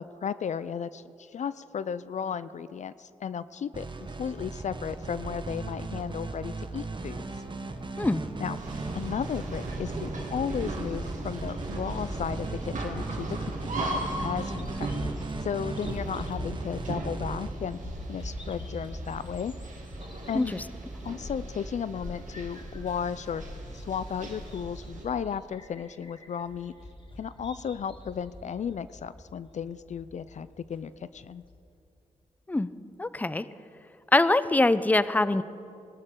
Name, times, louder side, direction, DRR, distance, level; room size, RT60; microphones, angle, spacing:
voice 1, 0.0-7.3 8.4-8.6 8.9-14.9 15.4-17.8 18.1-19.5 20.3-20.6 21.0-23.4 23.7-26.7 27.2-31.4, left 7 dB, 65° left, 16 dB, 0.4 m, -34 dB
sound 1, 3.7-17.9, right 3 dB, 35° right, 1.1 m, -38 dB
sound 2, 8.6-25.0, right 2 dB, 70° right, 2.3 m, -37 dB
Bird vocalization bird call bird song, 13.5-31.6, left 2 dB, 40° left, 1.6 m, -46 dB
voice 2, 33.0-33.5 34.1-35.4, left 2 dB, 10° left, 15 dB, 0.5 m, -23 dB
20.0 x 11.5 x 3.8 m, 2.6 s
cardioid pair, 60°, 14 cm